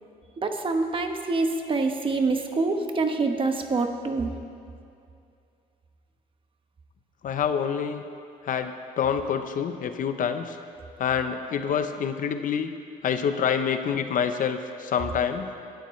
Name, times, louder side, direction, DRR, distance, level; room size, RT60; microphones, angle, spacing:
voice 1, 0.4-4.3, right 3 dB, 30° right, 5 dB, 1.2 m, -26 dB
voice 2, 7.2-8.0 8.4-10.6 11.0-12.7 13.0-15.5, left 7 dB, 50° left, 8 dB, 0.8 m, -27 dB
21.0 x 12.0 x 3.2 m, 2.5 s
cardioid pair, 110°, 17 cm